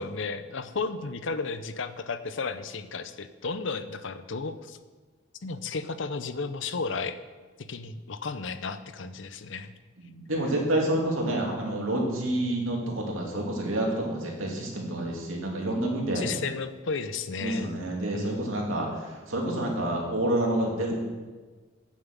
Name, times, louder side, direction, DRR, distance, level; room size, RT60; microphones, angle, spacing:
voice 1, 0.0-4.8 5.4-7.2 7.6-9.7 16.1-17.8 18.1-18.6, left 4 dB, 65° left, 11 dB, 0.7 m, -33 dB
voice 2, 10.0-16.3 17.4-20.9, right 1 dB, 80° right, -1 dB, 2.6 m, -28 dB
9.0 x 7.5 x 7.4 m, 1.3 s
head